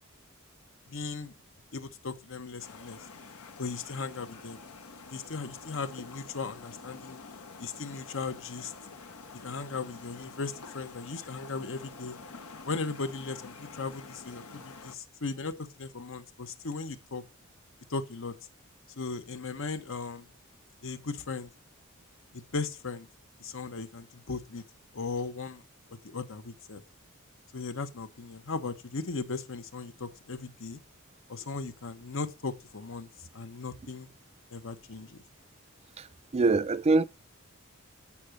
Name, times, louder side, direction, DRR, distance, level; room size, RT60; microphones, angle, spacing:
voice 1, 0.9-1.3 1.7-3.0 3.6-4.6 5.1-7.2 7.6-8.7 9.4-12.2 12.6-17.2 17.9-18.3 19.0-20.3 20.8-21.5 22.3-23.1 23.4-24.6 24.9-25.6 25.9-26.8 27.5-30.8 31.3-34.1 34.5-35.2, left 4 dB, 65° left, 1.0 m, -37 dB
sound 1, 2.6-15.0, left 4 dB, 80° left, 1.1 m, -48 dB
voice 2, 36.3-37.0, right 3 dB, 30° right, 0.4 m, -23 dB
8.5 x 5.8 x 6.4 m
head